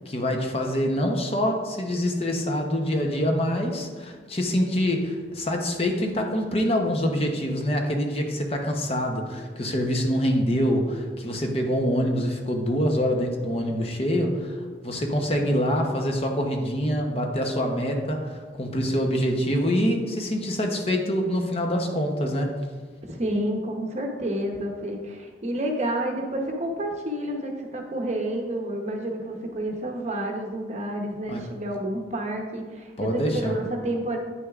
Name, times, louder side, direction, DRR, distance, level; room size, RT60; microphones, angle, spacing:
voice 1, 0.1-14.6 14.8-22.5 31.3-31.4 33.0-33.5, equal, 35° left, 3 dB, 0.8 m, -25 dB
voice 2, 23.1-34.2, right 1 dB, 40° right, 2 dB, 0.8 m, -29 dB
9.3 x 6.3 x 2.4 m, 1.5 s
head